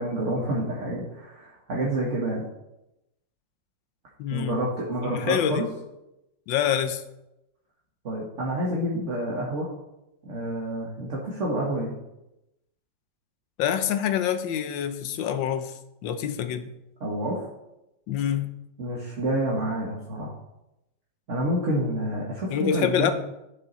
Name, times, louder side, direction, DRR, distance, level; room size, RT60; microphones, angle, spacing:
voice 1, 0.0-2.4 4.3-5.6 8.0-9.7 10.2-11.9 17.0-17.4 18.8-20.3 21.3-23.1, right 1 dB, 45° right, -3 dB, 1.7 m, -28 dB
voice 2, 4.2-4.6 5.0-5.7 6.5-7.0 13.6-15.7 16.0-16.7 18.1-18.5 22.5-23.1, left 9 dB, 90° left, 10 dB, 1.5 m, -26 dB
11.0 x 6.1 x 4.1 m, 0.89 s
omnidirectional pair, 2.0 m